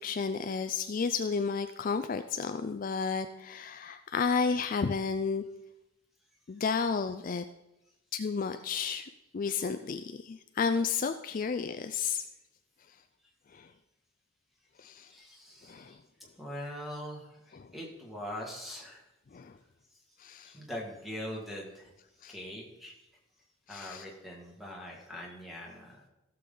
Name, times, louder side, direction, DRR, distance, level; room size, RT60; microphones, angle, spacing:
voice 1, 0.0-5.4 6.5-7.4 8.1-9.1 9.3-12.2 13.5-13.7 14.8-15.1 15.7-16.0 17.5-17.7 19.3-19.5 20.2-20.5 22.2-22.3 23.7-24.0, left 5 dB, 40° left, 9 dB, 0.3 m, -32 dB
voice 2, 15.1-16.0 16.4-19.1 20.4-21.9 22.3-23.0 23.7-26.0, equal, ahead, -2 dB, 1.9 m, -42 dB
16.0 x 6.9 x 3.8 m, 0.94 s
head